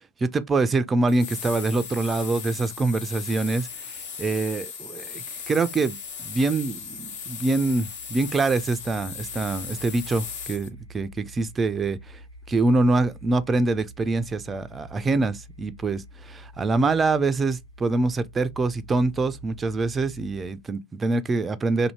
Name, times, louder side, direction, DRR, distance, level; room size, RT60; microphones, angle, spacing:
voice 1, 0.2-3.7 4.2-12.2 12.5-21.9, right 3 dB, 20° right, 0.4 m, -25 dB
sound 1, 1.1-10.7, left 6 dB, 60° left, 1.1 m, -37 dB
sound 2, 6.0-20.7, right 1 dB, 85° left, 0.6 m, -47 dB
2.7 x 2.7 x 4.3 m
figure-of-eight pair, 95°, 0 cm